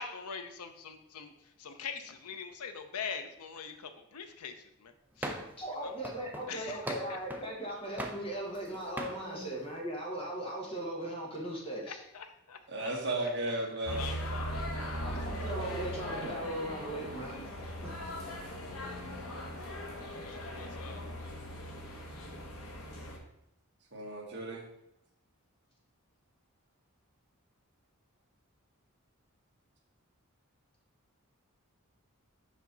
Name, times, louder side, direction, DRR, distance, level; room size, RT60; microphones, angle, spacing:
voice 1, 0.0-1.3 1.6-5.3 5.8-6.0 6.5-7.2 11.9-12.9 14.0-15.4 18.4-18.5 20.2-21.1, left 6 dB, 90° left, 8 dB, 0.7 m, -43 dB
sound 1, 5.2-5.6 6.0-7.5 8.0-8.7 9.0-9.2, right 1 dB, 10° right, 0.5 m, -40 dB
voice 2, 5.6-12.0 15.0-18.0, right 1 dB, 25° left, -2 dB, 1.5 m, -38 dB
voice 3, 12.7-14.1 23.9-24.6, right 1 dB, 55° right, -2 dB, 1.6 m, -35 dB
sound 2, 13.9-23.2, equal, 65° left, 1.2 m, -39 dB
5.6 x 5.2 x 3.9 m, 0.79 s
head